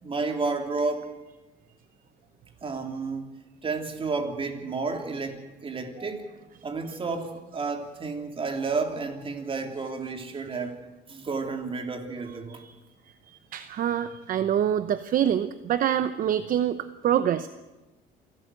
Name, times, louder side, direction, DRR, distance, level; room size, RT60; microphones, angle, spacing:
voice 1, 0.0-1.3 2.6-3.3 3.6-6.4 6.6-10.8 11.1-12.6, right 4 dB, 30° right, 3.2 m, -31 dB
voice 2, 13.3-16.8 17.0-17.5, right 10 dB, 55° right, 0.9 m, -25 dB
27.0 x 13.0 x 9.1 m
cardioid pair, 110°, 17 cm